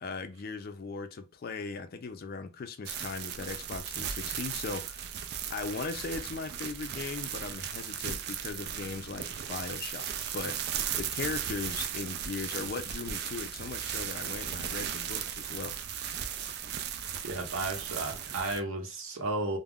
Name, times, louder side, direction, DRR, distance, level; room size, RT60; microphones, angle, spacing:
voice 1, 0.0-5.1 5.5-15.8, left 4 dB, 45° left, 0.4 m, -38 dB
sound 1, 2.8-18.6, right 9 dB, 50° right, 0.3 m, -36 dB
voice 2, 17.2-19.6, right 2 dB, 85° right, 0.8 m, -33 dB
2.3 x 2.1 x 3.5 m
head